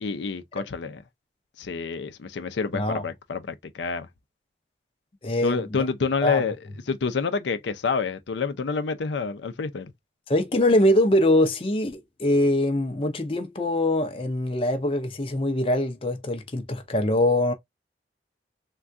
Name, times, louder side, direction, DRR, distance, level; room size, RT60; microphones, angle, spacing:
voice 1, 0.0-1.0 1.6-4.1 5.4-6.6 6.9-9.9, left 5 dB, 85° left, 0.5 m, -28 dB
voice 2, 2.7-3.0 5.2-5.6 6.2-6.4 10.3-17.5, left 1 dB, 30° left, 0.5 m, -23 dB
3.5 x 2.3 x 2.5 m
head